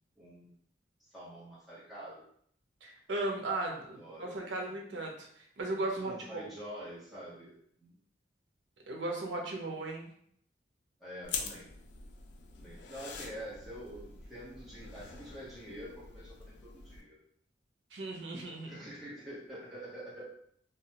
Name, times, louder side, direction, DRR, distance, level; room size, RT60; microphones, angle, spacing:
voice 1, 0.2-0.6 1.0-2.2 4.0-4.7 6.0-8.0 11.0-11.7 12.6-17.2 18.6-20.3, equal, ahead, -9 dB, 0.8 m, -46 dB
voice 2, 2.8-6.4 8.9-10.1 17.9-18.9, right 2 dB, 85° right, 0 dB, 0.6 m, -36 dB
sound 1, 11.2-17.0, left 5 dB, 70° left, 0.3 m, -44 dB
2.3 x 2.1 x 2.8 m, 0.65 s
head